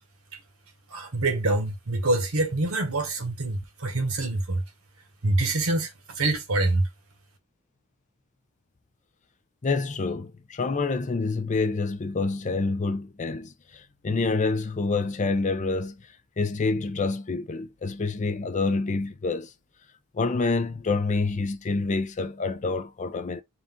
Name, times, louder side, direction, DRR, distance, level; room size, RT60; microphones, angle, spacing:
voice 1, 0.9-4.6 5.2-6.9, right 2 dB, 70° right, 1.1 m, -25 dB
voice 2, 9.6-16.0 16.4-19.5 20.1-23.4, left 3 dB, 35° left, 0.5 m, -27 dB
3.9 x 2.5 x 3.6 m
head